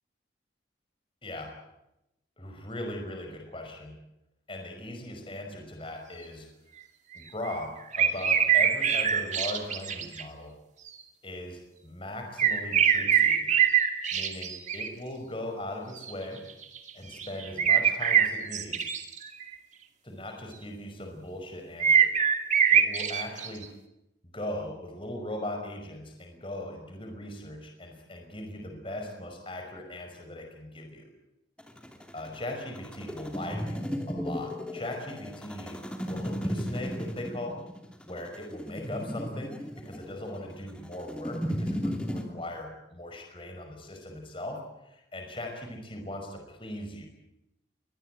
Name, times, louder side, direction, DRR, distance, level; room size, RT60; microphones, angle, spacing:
voice 1, 1.2-1.5 2.4-4.0 4.5-6.5 7.1-10.6 11.2-13.6 14.1-16.4 16.9-18.9 20.0-22.1 22.7-23.7 24.3-31.1 32.1-37.6 38.1-47.1, left 1 dB, 30° left, 3 dB, 5.4 m, -39 dB
sound 1, 7.4-7.6 7.9-10.2 10.9-11.0 12.4-14.9 16.0-16.1 16.5-16.9 17.2-19.5 21.8-23.6, right 8 dB, 40° right, 2.4 m, -23 dB
sound 2, 31.6-42.2, equal, 5° left, 2.8 m, -35 dB
24.0 x 20.0 x 9.2 m, 0.88 s
head